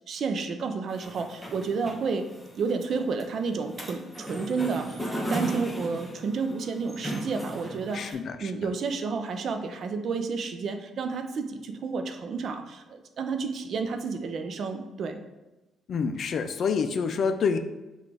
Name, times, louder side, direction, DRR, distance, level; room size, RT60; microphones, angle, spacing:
voice 1, 0.1-2.3 2.6-5.0 5.3-15.2, right 4 dB, 60° right, 6 dB, 0.5 m, -31 dB
sound 1, 0.9-8.1, equal, 5° left, 1.0 m, -36 dB
voice 2, 7.9-8.5 15.9-17.6, left 5 dB, 60° left, 9 dB, 0.3 m, -27 dB
5.8 x 2.4 x 3.3 m, 1.1 s
cardioid pair, 90°, 0 cm